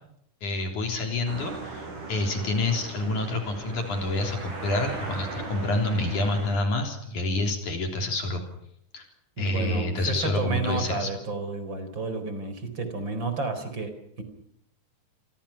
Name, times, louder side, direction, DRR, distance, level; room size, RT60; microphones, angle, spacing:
voice 1, 0.4-8.4 8.9-9.1 9.4-11.1, left 2 dB, 65° left, 4 dB, 5.0 m, -28 dB
sound 1, 1.3-6.6, right 3 dB, 70° right, 6.4 m, -38 dB
voice 2, 9.4-14.2, right 3 dB, 35° right, 9 dB, 4.8 m, -31 dB
29.0 x 24.0 x 5.9 m, 0.72 s
omnidirectional pair, 3.8 m